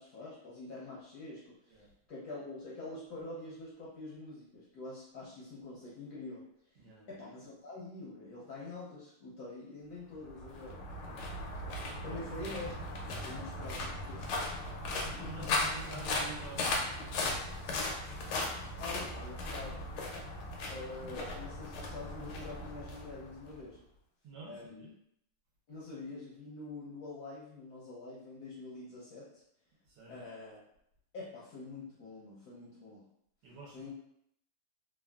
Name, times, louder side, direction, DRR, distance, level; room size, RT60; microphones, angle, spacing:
voice 1, 0.0-1.8 2.1-6.4 7.1-10.8 12.0-14.5 15.1-15.5 18.8-19.9 20.7-23.8 24.5-24.9 25.7-29.4 30.1-30.6 31.1-33.1 33.7-33.9, left 2 dB, 65° left, -7 dB, 1.0 m, -46 dB
voice 2, 6.8-7.1 10.9-11.3 12.0-12.7 14.6-14.7 15.0-17.4 24.2-24.9 29.9-30.2 33.4-33.9, right 4 dB, 70° right, -4 dB, 1.2 m, -49 dB
sound 1, 10.2-23.6, left 2 dB, 85° left, 1.5 m, -37 dB
3.4 x 2.2 x 2.3 m, 0.74 s
omnidirectional pair, 2.3 m